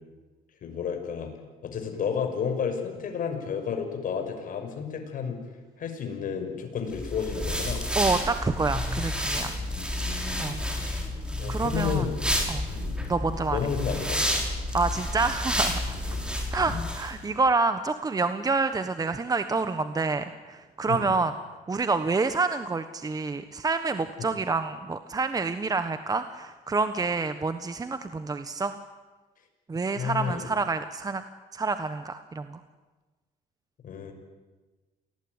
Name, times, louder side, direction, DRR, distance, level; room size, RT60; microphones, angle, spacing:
voice 1, 0.6-1.3 1.6-5.4 5.8-7.8 9.7-11.1 11.4-12.1 12.7-13.1 13.5-14.5 15.9-16.3 20.9-21.1 24.2-24.3 29.9-30.5 33.8-34.1, left 6 dB, 55° left, 5 dB, 6.2 m, -32 dB
sound 1, 6.9-17.1, left 1 dB, 5° right, 5.6 m, -30 dB
voice 2, 7.9-9.6 10.4-10.6 11.5-12.1 12.5-12.6 13.1-13.6 14.7-16.0 16.5-21.3 21.7-28.7 29.7-31.2 31.5-32.6, right 4 dB, 20° right, 10 dB, 1.3 m, -28 dB
28.0 x 19.5 x 9.7 m, 1.2 s
cardioid pair, 110°, 17 cm